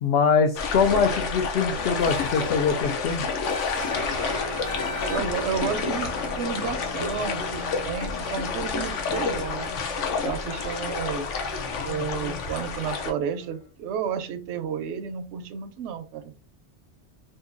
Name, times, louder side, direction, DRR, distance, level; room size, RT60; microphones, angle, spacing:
voice 1, 0.0-3.2, left 5 dB, 65° left, 4 dB, 0.7 m, -23 dB
sound 1, 0.6-13.1, left 5 dB, 90° left, 1.0 m, -29 dB
sound 2, 2.0-2.7 3.4-4.2 4.6-5.5, left 3 dB, 40° left, 1.0 m, -36 dB
sound 3, 3.9-13.6, equal, 35° right, 0.4 m, -40 dB
voice 2, 5.1-9.7 10.2-11.3 11.8-16.4, right 7 dB, 75° right, 9 dB, 0.9 m, -32 dB
2.8 x 2.5 x 3.7 m, 0.34 s
omnidirectional pair, 1.2 m